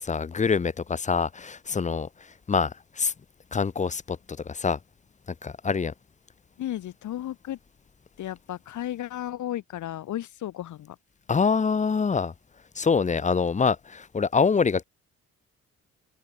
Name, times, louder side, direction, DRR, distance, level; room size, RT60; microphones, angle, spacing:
voice 1, 0.0-2.1 2.5-3.1 3.5-4.2 4.5-4.8 5.4-5.9 11.3-12.3 12.8-14.8, left 5 dB, 25° left, 0.7 m, -25 dB
voice 2, 6.6-7.6 8.2-11.0, left 12 dB, 75° left, 2.8 m, -34 dB
cardioid pair, 90°, 30 cm